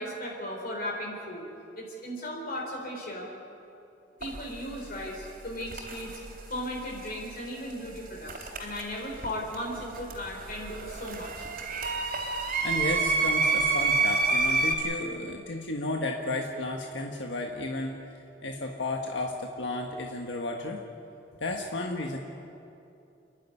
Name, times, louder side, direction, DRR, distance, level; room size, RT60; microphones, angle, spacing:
voice 1, 0.0-1.4 1.8-3.3 4.2-6.1 6.5-11.4, equal, 55° left, -1 dB, 4.1 m, -36 dB
sound 1, 4.2-4.4 5.6-6.2 8.3-9.3 9.5-14.8, right 4 dB, 55° right, 3.4 m, -28 dB
voice 2, 12.6-18.1 18.4-20.8 21.4-22.2, left 2 dB, 80° left, 1 dB, 1.5 m, -33 dB
29.0 x 11.5 x 9.9 m, 2.7 s
head